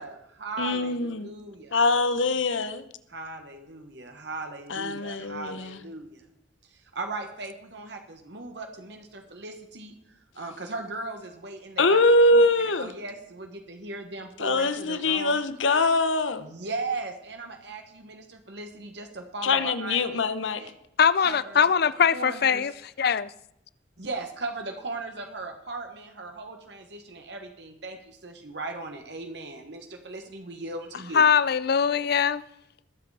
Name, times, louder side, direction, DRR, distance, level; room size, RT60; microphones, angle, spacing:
voice 1, 0.0-1.8 3.1-6.2 6.7-9.9 10.3-12.0 12.3-12.4 12.8-15.4 16.4-20.0 20.6-20.7 21.2-21.7 22.1-22.7 24.0-31.2, right 3 dB, 60° right, 1.3 m, -38 dB
voice 2, 0.6-1.3 1.7-2.8 4.7-5.8 11.8-12.9 14.4-16.5 19.4-20.6, left 2 dB, 90° left, 1.0 m, -23 dB
voice 3, 21.0-22.7 23.0-23.3 31.1-32.4, left 7 dB, 55° left, 0.5 m, -21 dB
20.5 x 7.8 x 4.8 m
head